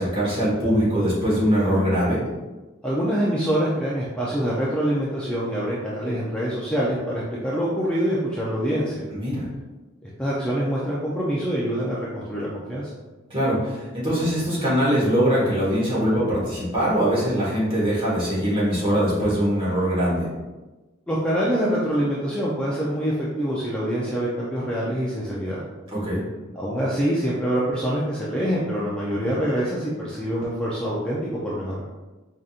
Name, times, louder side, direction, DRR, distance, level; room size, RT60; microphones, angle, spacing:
voice 1, 0.0-2.2 9.1-9.5 13.3-20.3 25.9-26.2, equal, 25° right, -8 dB, 1.5 m, -22 dB
voice 2, 2.8-9.1 10.0-12.9 21.1-25.7 26.5-31.8, equal, 5° left, -7 dB, 0.4 m, -25 dB
4.8 x 2.7 x 2.4 m, 1.2 s
head